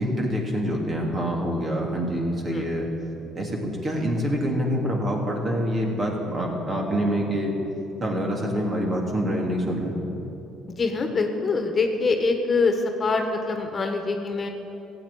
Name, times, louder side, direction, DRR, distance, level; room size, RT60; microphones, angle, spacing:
voice 1, 0.0-2.9 3.3-7.5 8.0-10.0, equal, 40° right, 0 dB, 3.1 m, -26 dB
voice 2, 10.8-14.5, left 4 dB, 35° left, 5 dB, 1.6 m, -24 dB
15.0 x 8.5 x 8.7 m, 3.0 s
supercardioid pair, 75°, 0 cm